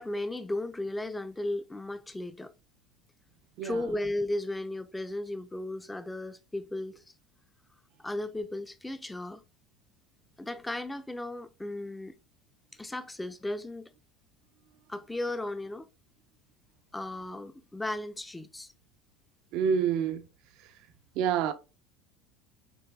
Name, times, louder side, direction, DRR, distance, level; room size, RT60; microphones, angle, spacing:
voice 1, 0.0-2.5 3.6-7.0 8.0-9.4 10.4-12.1 12.7-13.9 14.9-15.9 16.9-18.7, left 1 dB, 10° left, 0.5 m, -35 dB
voice 2, 3.6-3.9 19.5-20.3 20.6-20.7 21.1-21.5, right 7 dB, 65° right, 0.6 m, -28 dB
6.9 x 2.6 x 2.3 m
hypercardioid pair, 90°, 0 cm